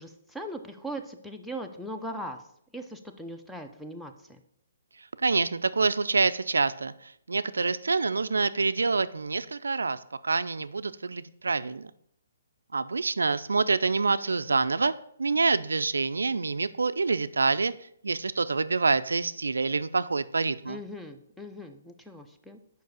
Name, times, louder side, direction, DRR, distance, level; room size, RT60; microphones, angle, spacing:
voice 1, 0.0-2.4 2.7-4.4 20.7-22.6, equal, ahead, 5 dB, 0.5 m, -39 dB
voice 2, 5.0-11.9 12.7-14.9 15.2-17.7 18.0-20.8, right 4 dB, 90° right, 14 dB, 0.3 m, -26 dB
5.2 x 4.7 x 6.2 m, 0.72 s
hypercardioid pair, 145°, 0 cm